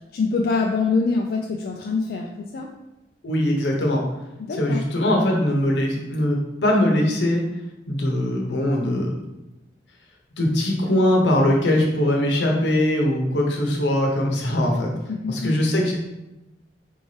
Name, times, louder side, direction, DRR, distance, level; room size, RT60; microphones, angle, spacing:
voice 1, 0.1-2.7 4.4-4.8 15.1-15.5, left 4 dB, 55° left, 0 dB, 0.3 m, -24 dB
voice 2, 3.2-4.0 4.6-7.5 7.9-9.1 10.4-14.9 15.3-16.0, left 1 dB, 80° left, 0 dB, 0.9 m, -21 dB
4.5 x 2.8 x 3.2 m, 0.97 s
head